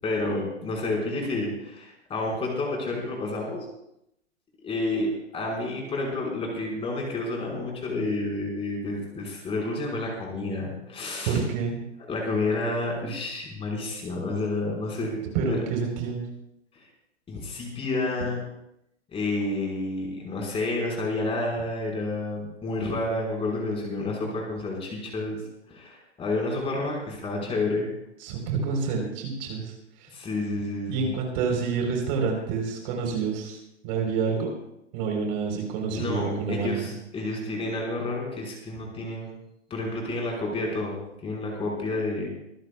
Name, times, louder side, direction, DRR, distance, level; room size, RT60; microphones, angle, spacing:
voice 1, 0.0-3.7 4.6-11.4 12.1-15.6 16.7-16.8 17.3-18.4 19.1-25.4 25.7-27.9 30.1-31.1 35.9-39.3 39.7-41.0 41.2-42.3, left 2 dB, 15° left, -1 dB, 5.1 m, -30 dB
voice 2, 11.3-11.8 15.3-16.2 28.2-29.7 30.9-33.6 33.8-34.5 34.9-36.7, right 5 dB, 40° right, 1 dB, 4.2 m, -28 dB
25.5 x 15.0 x 2.4 m, 0.81 s
hypercardioid pair, 125°, 36 cm